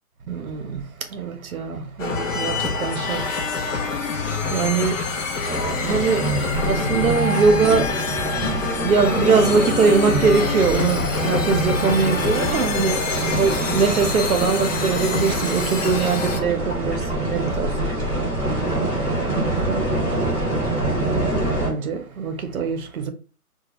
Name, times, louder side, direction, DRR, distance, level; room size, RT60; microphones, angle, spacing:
voice 1, 0.3-3.5 3.9-4.1 4.5-5.1 5.9-8.0 8.8-17.8 18.2-18.6 19.3-19.9 21.0-23.1, right 5 dB, 65° right, 0.6 m, -22 dB
sound 1, 2.0-16.4, left 4 dB, 55° left, 0.6 m, -26 dB
sound 2, 5.4-21.7, right 1 dB, 10° right, 0.6 m, -26 dB
2.2 x 2.0 x 2.8 m
hypercardioid pair, 155°, 46 cm